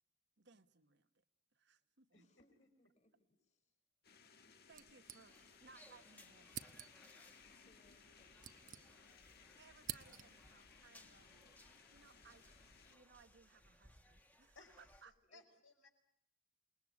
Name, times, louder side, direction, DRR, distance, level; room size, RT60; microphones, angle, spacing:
voice 1, 0.4-1.2 1.5-2.3 4.7-6.8 9.6-11.6 11.9-12.5 12.9-15.1, right 4 dB, 60° right, 9 dB, 1.4 m, -65 dB
voice 2, 2.1-3.7 7.7-9.6 15.2-15.4, left 1 dB, 35° left, 7 dB, 4.8 m, -74 dB
sound 1, 4.0-13.0, left 6 dB, 55° left, 1.7 m, -64 dB
staple-remover-empty, 4.7-5.7 6.0-6.1 6.5-7.2 8.0-9.3 9.5-10.5, right 10 dB, 45° right, 1.0 m, -51 dB
sound 2, 5.3-15.0, left 1 dB, 10° left, 1.6 m, -66 dB
voice 3, 14.6-15.9, left 3 dB, 75° left, 5 dB, 5.3 m, -64 dB
28.0 x 21.0 x 9.6 m, 0.72 s
head